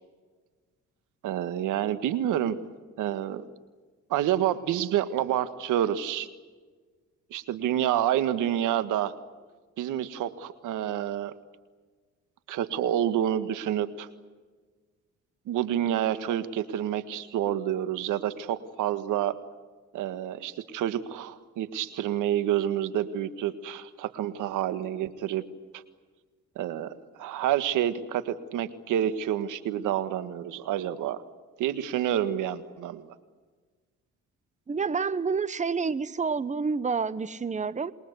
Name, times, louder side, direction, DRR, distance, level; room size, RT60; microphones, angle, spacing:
voice 1, 1.2-2.6 3.0-3.4 4.1-6.3 7.3-9.1 9.8-11.3 12.5-14.1 15.5-19.4 19.9-25.4 25.7-25.8 26.5-31.2 31.6-33.1, right 11 dB, 90° right, 12 dB, 1.7 m, -28 dB
voice 2, 34.7-37.9, right 5 dB, 25° right, 16 dB, 1.1 m, -28 dB
27.5 x 22.0 x 8.1 m, 1.4 s
cardioid pair, 90°, 30 cm